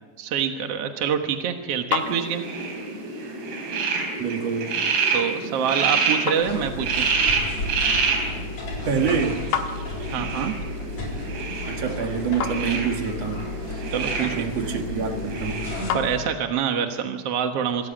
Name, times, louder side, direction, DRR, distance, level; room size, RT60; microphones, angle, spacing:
voice 1, 0.2-2.4 5.1-7.0 10.1-10.5 13.9-14.5 15.9-17.9, right 8 dB, 65° right, 5 dB, 1.5 m, -26 dB
sound 1, 1.0-16.8, left 7 dB, 80° left, 3.3 m, -37 dB
sound 2, 2.0-15.9, right 4 dB, 85° right, 6.0 m, -28 dB
voice 2, 4.2-4.7 8.8-9.4 11.7-13.8 14.2-15.7, right 6 dB, 50° right, 4 dB, 2.4 m, -27 dB
sound 3, 6.4-16.2, left 2 dB, 45° left, 5.2 m, -34 dB
26.0 x 14.0 x 8.8 m, 1.3 s
omnidirectional pair, 4.6 m